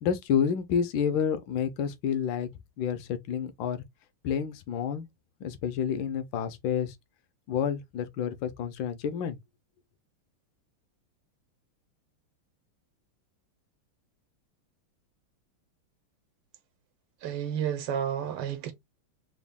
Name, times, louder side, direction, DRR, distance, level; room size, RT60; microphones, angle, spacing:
voice 1, 0.0-2.5 2.8-3.8 4.2-5.1 5.4-6.9 7.5-9.4, left 7 dB, 70° left, 1.2 m, -29 dB
voice 2, 17.2-18.7, right 9 dB, 90° right, 1.7 m, -31 dB
4.0 x 2.2 x 3.4 m
omnidirectional pair, 2.4 m